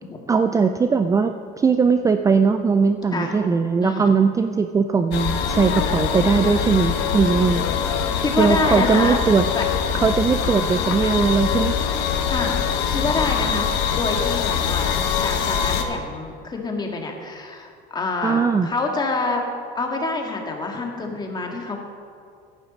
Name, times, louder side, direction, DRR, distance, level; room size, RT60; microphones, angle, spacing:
voice 1, 0.3-7.6 8.4-9.5 10.0-11.7 18.2-18.7, right 5 dB, 20° right, 8 dB, 0.4 m, -19 dB
voice 2, 3.8-4.1 8.2-9.2 9.5-9.6 12.3-12.6 12.9-19.4 19.8-21.8, left 3 dB, 25° left, 1 dB, 1.9 m, -27 dB
sound 1, 5.1-15.8, left 7 dB, 75° left, 1.1 m, -23 dB
11.0 x 10.0 x 5.2 m, 2.2 s
cardioid pair, 110°, 18 cm